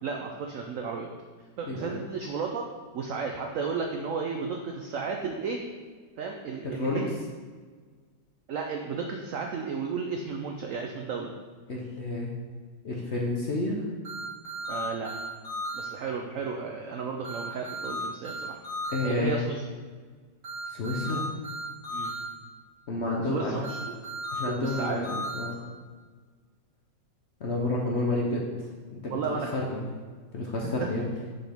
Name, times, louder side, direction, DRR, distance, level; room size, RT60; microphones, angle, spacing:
voice 1, 0.0-1.1 1.6-2.7 2.9-5.6 6.2-7.0 8.5-11.3 14.7-15.1 15.7-18.6 19.0-19.6 21.9-22.1 23.3-23.9 24.5-25.2 29.1-29.7, right 5 dB, 85° right, 2 dB, 0.7 m, -33 dB
voice 2, 6.6-7.0 11.7-12.3 12.8-13.8 18.9-19.4 20.7-21.2 22.9-23.7 24.3-25.6 27.4-28.7 29.0-29.2 29.5-29.8 30.3-31.1, left 2 dB, 55° left, -2 dB, 0.7 m, -30 dB
sound 1, 14.0-15.9 17.2-19.1 20.4-22.2 23.6-25.4, equal, 45° right, 2.5 m, -35 dB
5.9 x 5.4 x 3.5 m, 1.5 s
omnidirectional pair, 2.0 m